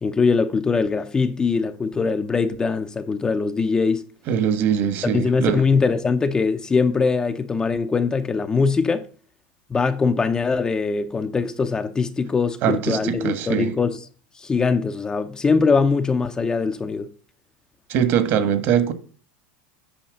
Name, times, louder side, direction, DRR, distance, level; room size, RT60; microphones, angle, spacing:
voice 1, 0.0-4.1 5.0-9.1 9.7-14.0 14.4-17.1, left 4 dB, 15° left, 0.6 m, -22 dB
voice 2, 4.3-5.6 12.6-13.7 17.9-18.9, right 8 dB, 45° right, 1.4 m, -22 dB
8.7 x 5.7 x 7.7 m
supercardioid pair, 150°, 5 cm